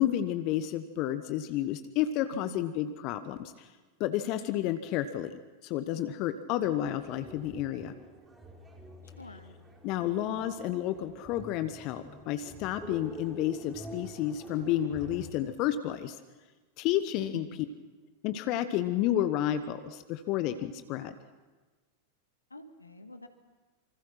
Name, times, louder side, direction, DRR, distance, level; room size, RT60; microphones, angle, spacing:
voice 1, 0.0-3.7 4.0-7.9 9.8-16.2 16.8-17.5 18.2-21.1, left 12 dB, 40° left, 11 dB, 1.1 m, -31 dB
sound 1, 6.6-15.3, right 1 dB, 10° right, 3.6 m, -47 dB
voice 2, 9.2-9.6 17.3-17.6 22.5-23.3, left 1 dB, 80° left, 7 dB, 1.9 m, -46 dB
27.0 x 25.0 x 6.0 m, 1.3 s
figure-of-eight pair, 90°, 0 cm